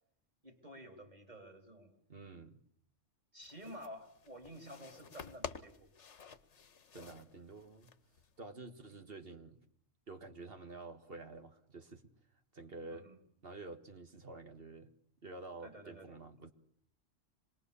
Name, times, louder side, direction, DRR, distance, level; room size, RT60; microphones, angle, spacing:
voice 1, 0.4-2.0 3.3-5.9 7.0-7.2 12.9-13.2 15.6-16.2, equal, 35° right, 3.8 m, -51 dB
voice 2, 2.1-2.6 6.9-7.9 8.4-9.6 10.1-12.1 12.5-13.1 13.4-14.9 15.2-16.5, right 3 dB, 50° right, 1.8 m, -49 dB
sound 1, 3.4-8.4, left 6 dB, 65° left, 1.5 m, -50 dB
26.0 x 21.0 x 7.0 m
omnidirectional pair, 1.3 m